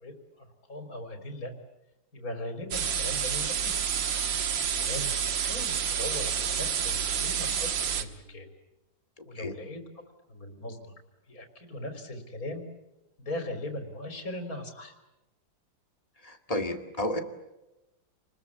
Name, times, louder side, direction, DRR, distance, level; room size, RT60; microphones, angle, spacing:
voice 1, 0.0-1.5 2.1-3.7 4.7-5.1 5.4-8.5 9.3-10.0 10.3-10.9 11.3-12.7 13.2-14.9, left 1 dB, 50° left, 6 dB, 4.3 m, -39 dB
sound 1, 2.7-8.0, right 7 dB, 75° right, 2.2 m, -29 dB
voice 2, 9.2-9.5 16.2-17.2, left 1 dB, 20° left, 6 dB, 2.3 m, -32 dB
29.0 x 21.0 x 8.5 m, 0.97 s
omnidirectional pair, 2.0 m